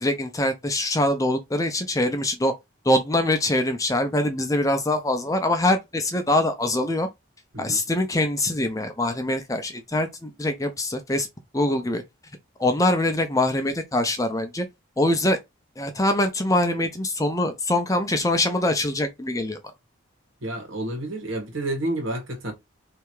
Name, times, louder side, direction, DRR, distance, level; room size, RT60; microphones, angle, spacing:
voice 1, 0.0-2.5 2.8-7.1 7.6-11.3 11.5-12.0 12.6-14.7 15.0-15.4 15.8-19.6, left 1 dB, 15° left, 0.6 m, -23 dB
voice 2, 20.4-22.5, right 1 dB, 70° right, 1.9 m, -30 dB
3.4 x 2.9 x 4.7 m
head